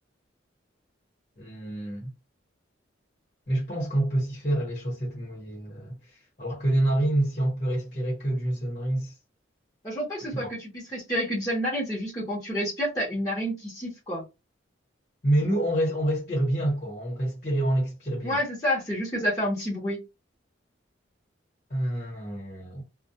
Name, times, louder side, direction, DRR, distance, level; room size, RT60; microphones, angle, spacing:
voice 1, 1.4-2.1 3.5-9.1 10.2-10.5 15.2-18.4 21.7-22.8, right 1 dB, 40° left, 1.1 m, -27 dB
voice 2, 9.8-14.3 18.2-20.0, equal, 20° left, 0.8 m, -29 dB
2.2 x 2.2 x 2.7 m
head